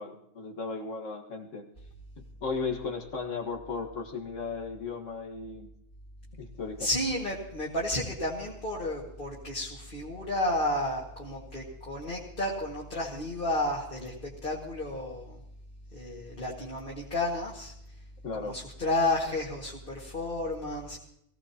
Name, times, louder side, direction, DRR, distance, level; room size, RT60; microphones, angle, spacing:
voice 1, 0.0-1.7 2.2-5.7 6.4-6.9 18.2-18.6, left 4 dB, 85° left, 2 dB, 2.0 m, -36 dB
voice 2, 6.8-15.4 15.9-17.7 18.3-21.0, left 1 dB, 45° left, -4 dB, 2.2 m, -32 dB
22.5 x 16.0 x 2.9 m, 0.75 s
omnidirectional pair, 1.3 m